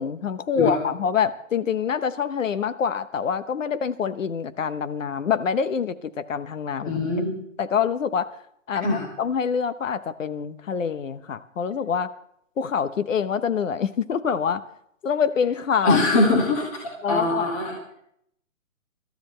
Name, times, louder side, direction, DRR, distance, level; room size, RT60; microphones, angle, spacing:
voice 1, 0.0-7.0 7.6-8.3 8.7-12.1 12.6-14.6 15.0-16.0 17.0-17.4, left 7 dB, 70° left, 13 dB, 1.1 m, -25 dB
voice 2, 6.8-7.4 8.8-9.1 15.8-16.8 17.1-17.9, left 2 dB, 25° left, 0 dB, 2.1 m, -22 dB
22.5 x 13.0 x 3.3 m, 0.71 s
hypercardioid pair, 165°, 41 cm